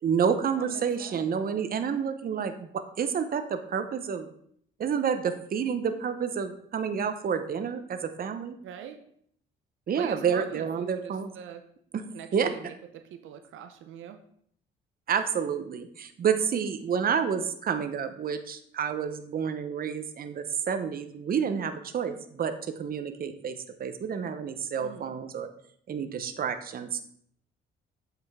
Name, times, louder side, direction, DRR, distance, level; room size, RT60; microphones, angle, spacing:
voice 1, 0.0-2.7 3.0-4.3 4.8-8.5 9.9-11.3 11.9-12.0 12.3-12.5 15.1-23.5 23.8-25.5 25.9-27.0, right 7 dB, 45° right, 9 dB, 0.8 m, -29 dB
voice 2, 0.6-1.4 8.6-9.0 9.9-11.6 12.1-14.2 24.8-25.1, right 9 dB, 80° right, 8 dB, 0.6 m, -43 dB
7.7 x 5.6 x 3.5 m, 0.66 s
cardioid pair, 90°, 20 cm